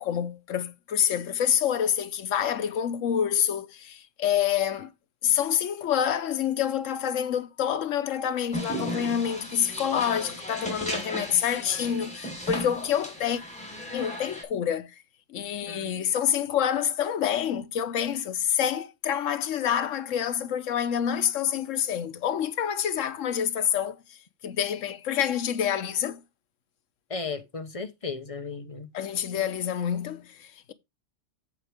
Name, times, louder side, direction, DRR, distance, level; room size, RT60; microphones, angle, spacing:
voice 1, 0.0-4.9 5.2-13.4 13.9-14.9 15.3-24.2 24.4-26.2 28.9-30.7, left 9 dB, 85° left, 1.2 m, -27 dB
sound 1, 8.5-14.4, equal, 5° left, 3.7 m, -36 dB
voice 2, 15.6-16.0 27.1-28.9, left 4 dB, 30° left, 1.0 m, -35 dB
8.1 x 7.6 x 3.4 m
omnidirectional pair, 1.3 m